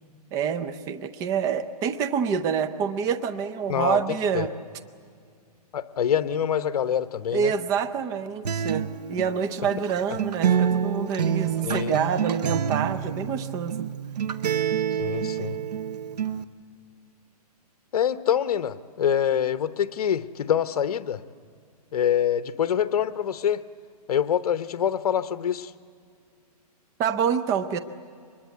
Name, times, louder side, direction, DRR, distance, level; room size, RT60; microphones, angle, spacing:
voice 1, 0.3-4.5 7.3-13.9 27.0-27.8, right 7 dB, 15° right, 10 dB, 0.6 m, -27 dB
voice 2, 5.7-7.5 11.6-12.0 15.0-15.6 17.9-21.2 21.9-23.6 24.1-25.7, left 9 dB, 65° left, 12 dB, 1.0 m, -25 dB
Acoustic guitar, 8.4-16.4, right 8 dB, 85° right, 0.9 m, -27 dB
24.5 x 21.0 x 8.2 m, 2.2 s
hypercardioid pair, 160°, 20 cm